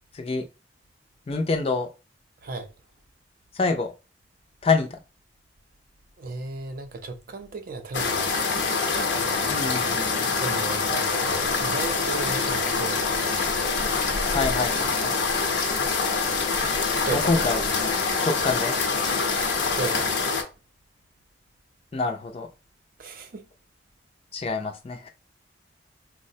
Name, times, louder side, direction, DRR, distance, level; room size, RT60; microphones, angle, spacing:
voice 1, 0.1-0.4 1.3-1.9 3.5-3.9 4.6-5.0 9.5-10.3 14.3-15.2 17.1-17.9 18.2-18.8 21.9-22.5 24.3-25.1, left 3 dB, 35° left, 0.4 m, -26 dB
voice 2, 6.2-8.7 10.4-13.6 17.0-17.3 19.7-20.4 23.0-23.5, right 3 dB, 55° right, 0.5 m, -35 dB
sound 1, 7.9-20.4, left 4 dB, 85° left, 0.7 m, -25 dB
Motorcycle / Traffic noise roadway noise, 9.1-14.4, right 1 dB, 20° right, 0.8 m, -49 dB
3.9 x 2.1 x 2.7 m
head